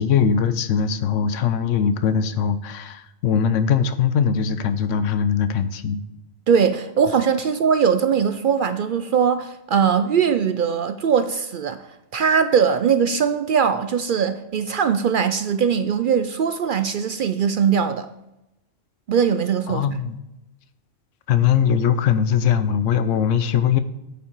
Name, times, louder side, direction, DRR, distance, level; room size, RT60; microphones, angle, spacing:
voice 1, 0.0-6.0 19.7-20.2 21.3-23.8, left 7 dB, 85° left, 12 dB, 1.0 m, -21 dB
voice 2, 6.5-11.8 12.1-18.1 19.1-19.9, right 7 dB, 60° right, 10 dB, 0.5 m, -20 dB
8.6 x 7.2 x 4.5 m, 0.92 s
omnidirectional pair, 1.3 m